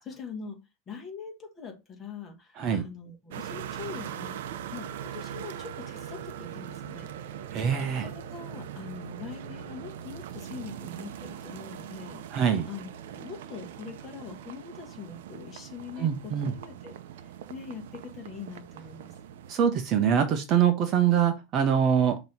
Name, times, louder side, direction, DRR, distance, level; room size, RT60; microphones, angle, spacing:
voice 1, 0.0-0.6 0.9-4.4 4.7-7.1 8.0-19.1, left 5 dB, 20° left, 2 dB, 1.5 m, -43 dB
sound 1, 3.3-19.5, right 9 dB, 80° right, 0.7 m, -41 dB
voice 2, 7.5-8.1 12.3-12.7 16.0-16.5 19.5-22.2, right 8 dB, 30° right, 7 dB, 0.8 m, -24 dB
6.1 x 3.0 x 5.3 m, 0.25 s
supercardioid pair, 175°, 0 cm